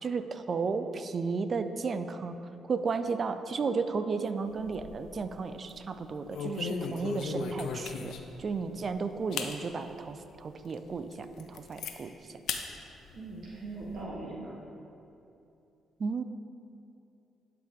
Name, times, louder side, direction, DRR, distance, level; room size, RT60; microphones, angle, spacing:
voice 1, 0.0-2.3 2.6-8.1 8.4-12.3 16.0-16.2, right 4 dB, 45° right, 10 dB, 0.4 m, -33 dB
sound 1, 4.5-5.2 5.6-5.8 6.3-8.4 8.9-9.0 9.3-9.6 10.1-10.2 10.7-10.8 11.1-11.9 12.5-12.7 13.0-14.0, left 5 dB, 75° left, 0.6 m, -36 dB
voice 2, 13.1-14.5, right 2 dB, 65° right, -4 dB, 1.2 m, -40 dB
11.5 x 4.7 x 3.7 m, 2.8 s
cardioid pair, 90°, 0 cm